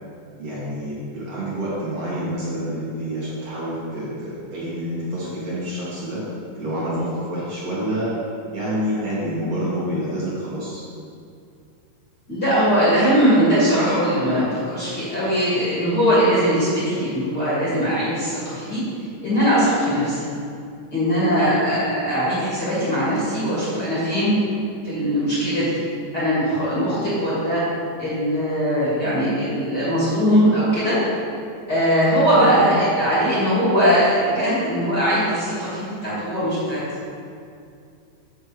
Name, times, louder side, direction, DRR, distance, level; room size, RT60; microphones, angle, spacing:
voice 1, 0.4-6.2 6.6-8.1 8.5-10.8 32.4-32.6, equal, 50° right, -9 dB, 2.7 m, -28 dB
voice 2, 12.3-18.8 19.2-20.3 20.9-24.3 24.8-25.9 26.1-27.6 28.0-31.1 31.7-36.8, equal, 30° left, -10 dB, 2.5 m, -20 dB
8.1 x 7.0 x 5.0 m, 2.4 s
omnidirectional pair, 4.1 m